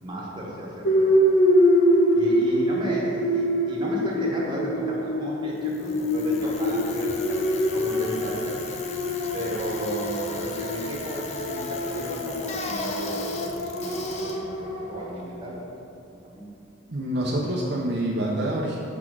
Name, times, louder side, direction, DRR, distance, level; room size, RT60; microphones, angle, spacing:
voice 1, 0.0-1.2 2.1-8.6 9.3-15.6 16.2-16.5, right 1 dB, 25° right, -5 dB, 1.2 m, -34 dB
sound 1, 0.8-15.0, equal, 80° left, 0.9 m, -25 dB
Bicycle, 5.6-15.6, left 3 dB, 35° left, 0.5 m, -38 dB
voice 2, 16.9-18.8, right 1 dB, 55° right, -4 dB, 0.6 m, -26 dB
5.8 x 3.9 x 6.2 m, 2.6 s
head